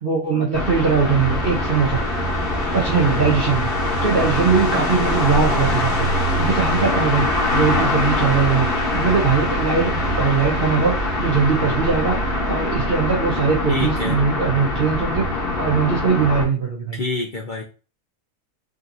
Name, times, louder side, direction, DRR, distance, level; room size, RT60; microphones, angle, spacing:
voice 1, 0.0-2.0 2.7-15.3 15.6-17.0, right 5 dB, 50° right, -2 dB, 0.7 m, -21 dB
sound 1, 0.5-16.5, left 1 dB, 40° left, 1.1 m, -22 dB
voice 2, 13.7-14.2 16.9-17.6, left 3 dB, 60° left, -1 dB, 0.5 m, -26 dB
5.1 x 2.8 x 2.6 m, 0.34 s
omnidirectional pair, 1.7 m